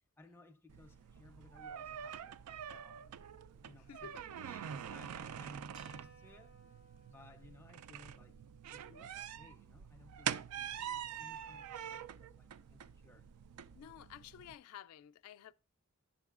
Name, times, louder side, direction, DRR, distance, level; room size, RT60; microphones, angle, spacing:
voice 1, 0.2-2.4 2.7-3.0 3.6-6.6 7.1-8.4 8.7-13.3, left 2 dB, 10° left, 0.4 m, -61 dB
sound 1, 0.7-14.5, right 9 dB, 85° right, 0.3 m, -45 dB
voice 2, 3.9-4.2 13.7-15.5, left 9 dB, 80° left, 0.3 m, -52 dB
sound 2, 5.7-10.1, right 3 dB, 70° right, 1.7 m, -64 dB
8.7 x 6.6 x 2.4 m
head